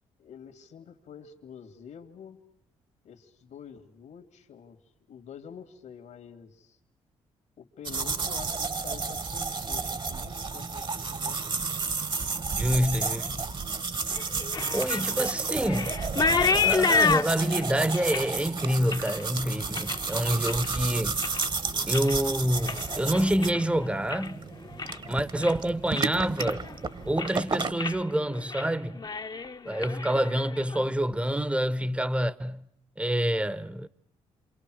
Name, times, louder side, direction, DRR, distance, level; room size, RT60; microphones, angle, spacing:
voice 1, 0.2-2.4 3.0-4.8 5.1-6.8 7.6-11.4, left 7 dB, 75° left, 2.4 m, -47 dB
sound 1, 7.9-27.7, right 4 dB, 40° right, 1.4 m, -32 dB
voice 2, 12.5-13.4 14.7-16.0 16.5-21.2 21.9-24.4 25.1-26.6 27.0-29.1 29.6-32.6 33.0-33.9, right 1 dB, 10° right, 1.0 m, -27 dB
sound 2, 14.1-20.8 21.1-21.6 21.9-24.4 24.7-25.1 25.4-25.5 26.0-26.8 27.0-27.4 27.8-28.0 28.3-28.7 28.9-30.8, left 5 dB, 35° left, 1.0 m, -30 dB
28.0 x 27.0 x 6.4 m
supercardioid pair, 65°, 12 cm